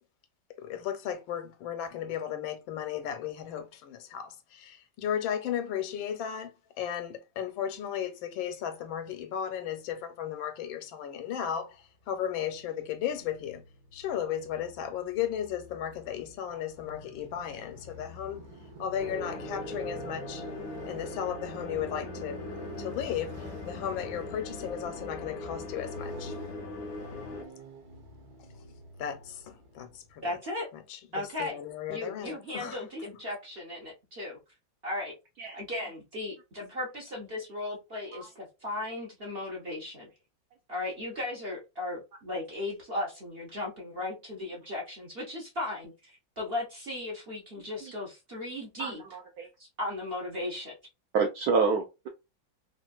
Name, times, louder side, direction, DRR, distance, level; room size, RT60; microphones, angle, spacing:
voice 1, 0.6-13.6 13.9-18.5 18.8-20.4 20.9-22.4 22.8-26.4 29.0-30.2 30.7-32.8, left 9 dB, 85° left, 1.4 m, -35 dB
Motorcycle, 12.1-30.3, right 1 dB, 60° right, 1.2 m, -47 dB
sound 1, 19.0-27.4, left 3 dB, 65° left, 1.0 m, -40 dB
voice 2, 30.2-30.7 31.1-31.6 31.9-34.4 34.8-35.1 35.5-40.1 40.7-49.2 49.6-50.7, left 2 dB, 45° right, 0.8 m, -36 dB
voice 3, 48.8-49.5 51.1-52.1, right 4 dB, 75° right, 0.8 m, -28 dB
3.3 x 2.5 x 2.3 m
omnidirectional pair, 2.1 m